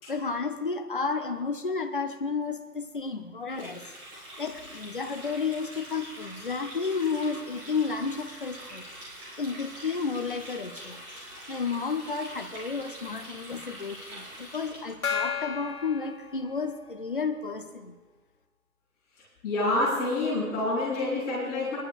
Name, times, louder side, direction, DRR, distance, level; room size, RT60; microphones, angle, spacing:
voice 1, 0.1-3.8 4.4-8.8 9.4-11.0 11.5-17.9, left 5 dB, 35° left, 5 dB, 0.6 m, -32 dB
Water tap faucet, 3.5-15.1, equal, 20° right, 3.8 m, -44 dB
Gong, 15.0-17.1, left 7 dB, 65° left, 1.3 m, -34 dB
voice 2, 19.4-21.8, left 2 dB, 10° left, -9 dB, 3.6 m, -27 dB
21.0 x 11.0 x 2.4 m, 1.3 s
hypercardioid pair, 170°, 47 cm